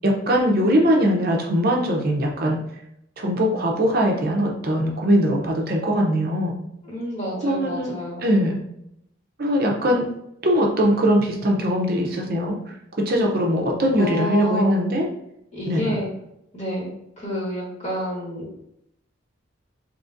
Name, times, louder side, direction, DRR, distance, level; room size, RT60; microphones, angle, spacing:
voice 1, 0.0-2.6 3.2-6.5 7.4-7.9 8.2-8.6 9.4-10.1 10.4-12.5 13.0-15.1 15.7-16.0, equal, 50° right, 0 dB, 0.5 m, -21 dB
voice 2, 6.8-8.3 14.0-14.7 15.5-16.1 16.5-16.9 17.2-18.7, equal, 35° left, -5 dB, 1.3 m, -29 dB
3.8 x 2.9 x 2.5 m, 0.79 s
head